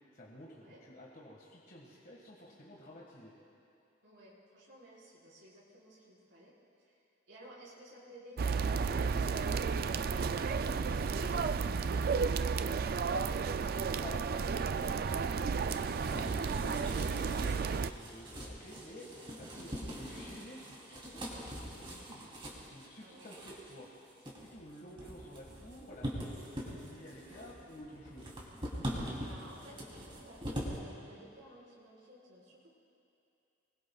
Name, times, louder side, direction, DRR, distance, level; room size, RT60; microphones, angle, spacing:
voice 1, 0.1-3.3 14.0-19.1 19.3-22.3 22.7-23.9 24.2-28.3, equal, 45° left, -4 dB, 1.7 m, -51 dB
voice 2, 4.0-12.4 19.7-19.8 23.0-23.3 29.2-32.7, right 1 dB, 75° right, -9 dB, 4.4 m, -56 dB
sound 1, 8.4-17.9, right 5 dB, 50° right, 0.4 m, -32 dB
sound 2, 15.6-30.8, equal, 25° right, 3.2 m, -43 dB
25.5 x 21.5 x 2.4 m, 2.7 s
head